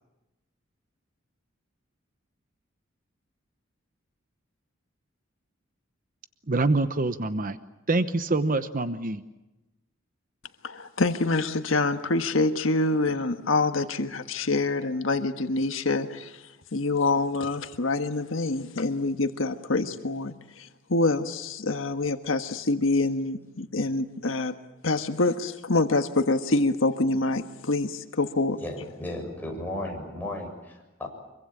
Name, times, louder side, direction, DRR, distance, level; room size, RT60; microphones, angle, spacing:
voice 1, 6.5-7.6 7.9-9.2, right 2 dB, 45° right, 11 dB, 0.9 m, -25 dB
voice 2, 10.6-16.4 16.7-24.5 24.8-28.6, left 2 dB, 85° left, 7 dB, 1.4 m, -26 dB
voice 3, 28.6-31.1, left 1 dB, 10° left, 0 dB, 7.1 m, -35 dB
25.0 x 23.5 x 8.7 m, 1.0 s
head